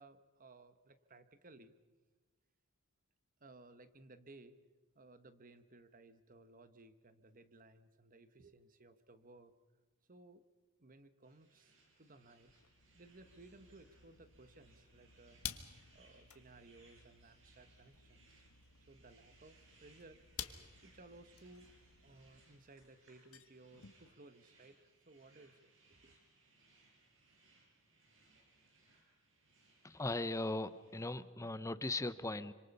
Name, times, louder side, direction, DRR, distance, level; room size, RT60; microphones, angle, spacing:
voice 1, 0.0-1.8 3.4-4.6 4.9-9.5 10.1-10.4 10.8-12.5 12.9-15.4 15.9-18.5 18.8-20.2 20.8-21.7 22.0-26.2, right 2 dB, 40° right, 11 dB, 1.2 m, -60 dB
sound 1, 11.2-31.1, right 3 dB, 60° right, 6.9 m, -69 dB
sound 2, 12.5-22.9, left 9 dB, 85° left, 1.5 m, -53 dB
sound 3, 18.8-18.9 21.2-22.5 22.8-22.9 23.1-24.2, left 3 dB, 65° left, 1.2 m, -64 dB
voice 2, 29.8-32.5, left 2 dB, 15° left, 14 dB, 0.7 m, -38 dB
26.5 x 26.0 x 5.4 m, 1.3 s
head